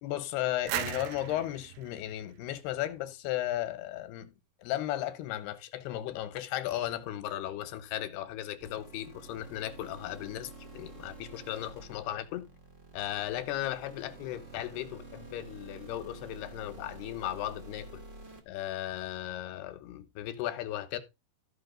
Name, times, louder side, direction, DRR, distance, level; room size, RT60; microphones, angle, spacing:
voice 1, 0.0-4.3 4.6-12.5 12.9-18.0 18.5-21.0, left 13 dB, 90° left, 3.0 m, -36 dB
sound 1, 0.7-3.4, right 14 dB, 80° right, 2.8 m, -39 dB
sound 2, 8.6-18.4, right 3 dB, 40° right, 1.1 m, -49 dB
14.0 x 5.9 x 3.8 m
omnidirectional pair, 4.5 m